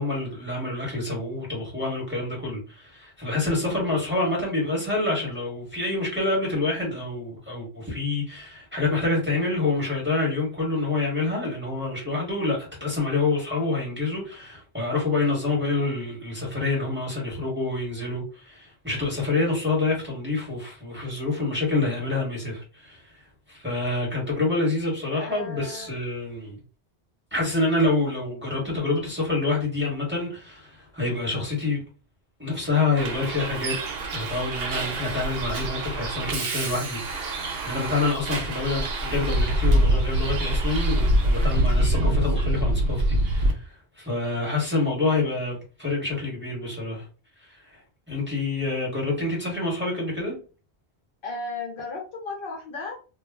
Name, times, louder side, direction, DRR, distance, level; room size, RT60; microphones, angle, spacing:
voice 1, 0.0-26.6 27.3-31.8 32.4-33.7 34.1-47.0 47.5-47.8 48.1-50.4, left 3 dB, 10° right, 1.2 m, -27 dB
voice 2, 25.1-25.9 51.2-53.0, left 3 dB, 60° left, 0.9 m, -35 dB
Bus, 33.0-43.5, right 1 dB, 70° right, 0.8 m, -25 dB
2.3 x 2.1 x 3.5 m
omnidirectional pair, 1.1 m